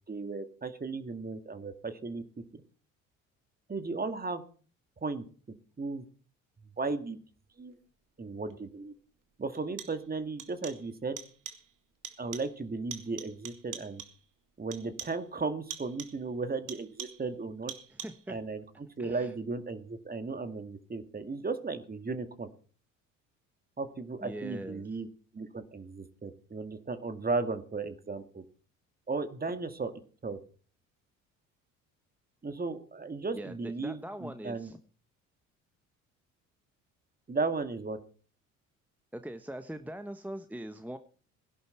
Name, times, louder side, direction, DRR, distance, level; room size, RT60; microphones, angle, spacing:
voice 1, 0.0-2.2 2.5-2.6 3.7-4.4 5.0-5.2 5.8-6.0 6.6-7.2 7.6-7.8 8.2-8.9 9.4-11.2 12.2-14.0 14.6-17.7 18.3-22.5 23.8-25.1 25.3-28.4 29.1-29.9 30.2-30.4 32.4-34.7 37.3-38.0, right 3 dB, 25° right, 10 dB, 2.0 m, -35 dB
sound 1, 8.5-8.6 9.5-10.1 10.4-10.9 11.2-11.7 12.0-12.6 12.9-14.3 14.7-15.3 15.7-16.3 16.7-17.3 17.7-18.3, right 9 dB, 55° right, 2.6 m, -44 dB
voice 2, 17.9-18.4 19.0-19.3 24.2-24.8 33.3-34.8 39.1-41.0, right 1 dB, 5° right, 9 dB, 1.2 m, -41 dB
17.5 x 11.0 x 4.5 m, 0.40 s
hypercardioid pair, 60°, 38 cm